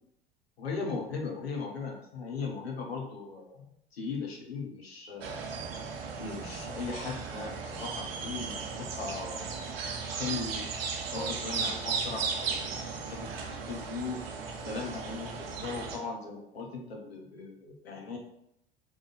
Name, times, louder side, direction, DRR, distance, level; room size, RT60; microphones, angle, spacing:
voice 1, 0.6-3.7 3.9-5.4 6.2-9.4 10.2-10.7 11.0-12.5 13.1-14.2 14.6-18.2, left 4 dB, 85° left, 0 dB, 1.0 m, -38 dB
sound 1, 5.2-16.0, right 5 dB, 70° right, 0.8 m, -36 dB
4.0 x 3.2 x 4.0 m, 0.75 s
figure-of-eight pair, 70°, 30 cm